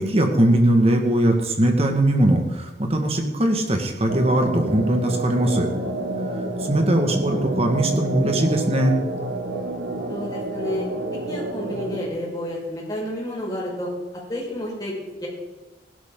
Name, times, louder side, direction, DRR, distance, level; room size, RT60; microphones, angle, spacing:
voice 1, 0.0-5.7 6.7-8.9, right 1 dB, 35° right, 3 dB, 1.8 m, -20 dB
sound 1, 4.1-12.1, right 2 dB, 80° right, 1.7 m, -29 dB
voice 2, 10.1-10.9 11.3-13.9 14.3-14.9 15.2-15.3, left 1 dB, 20° left, -4 dB, 5.2 m, -30 dB
16.5 x 12.0 x 3.9 m, 1.1 s
head